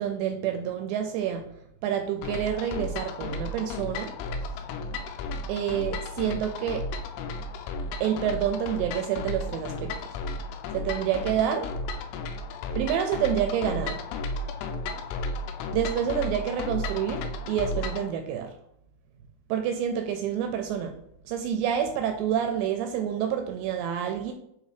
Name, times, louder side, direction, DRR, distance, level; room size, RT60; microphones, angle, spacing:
voice 1, 0.0-1.5 1.8-4.2 4.6-4.7 5.5-6.9 8.0-10.0 10.7-11.7 12.8-14.0 15.7-18.5 19.5-21.0 21.3-24.3, right 9 dB, 85° right, 6 dB, 2.5 m, -28 dB
sound 1, 2.2-18.1, left 2 dB, 90° left, 3.2 m, -34 dB
7.8 x 2.7 x 4.9 m, 0.73 s
omnidirectional pair, 5.4 m